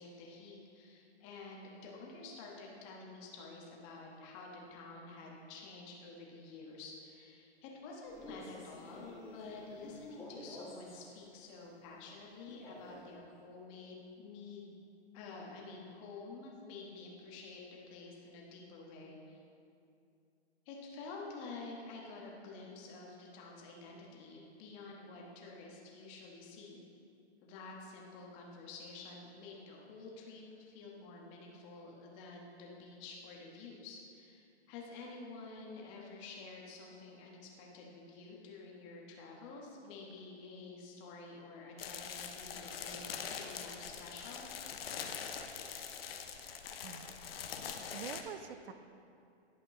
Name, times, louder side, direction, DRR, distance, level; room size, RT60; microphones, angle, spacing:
voice 1, 0.0-14.8 15.1-19.4 20.6-26.8 27.4-44.4, left 3 dB, 30° left, -2 dB, 1.4 m, -50 dB
Male speech man speaking, 8.0-11.1 12.5-13.1, left 1 dB, 10° left, 1.6 m, -50 dB
sound 1, 41.8-48.2, left 7 dB, 60° left, 0.8 m, -43 dB
voice 2, 47.9-48.7, right 8 dB, 55° right, 9 dB, 0.6 m, -45 dB
11.5 x 5.1 x 3.7 m, 2.6 s
hypercardioid pair, 145°, 33 cm